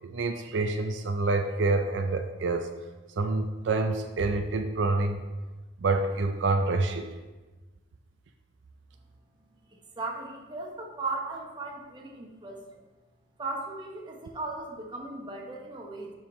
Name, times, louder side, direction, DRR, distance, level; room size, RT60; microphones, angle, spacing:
voice 1, 0.0-2.7 3.2-5.2 5.8-7.1, right 3 dB, 75° right, 6 dB, 0.4 m, -27 dB
voice 2, 9.7-12.6 13.4-16.1, right 3 dB, 25° right, 0 dB, 0.9 m, -37 dB
7.4 x 3.8 x 5.1 m, 1.2 s
head